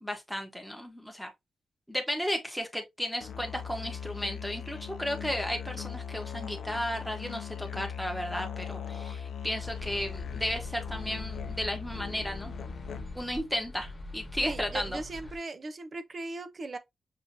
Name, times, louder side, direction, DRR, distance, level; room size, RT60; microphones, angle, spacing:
voice 1, 0.0-1.3 1.9-12.5 13.1-15.0, equal, ahead, 0.9 m, -34 dB
Musical instrument, 3.2-13.3, left 7 dB, 80° left, 0.5 m, -39 dB
sound 1, 9.6-15.4, left 1 dB, 15° left, 1.2 m, -43 dB
voice 2, 14.4-16.8, right 2 dB, 35° right, 0.5 m, -38 dB
5.9 x 2.7 x 2.7 m
wide cardioid pair, 150°, 0 cm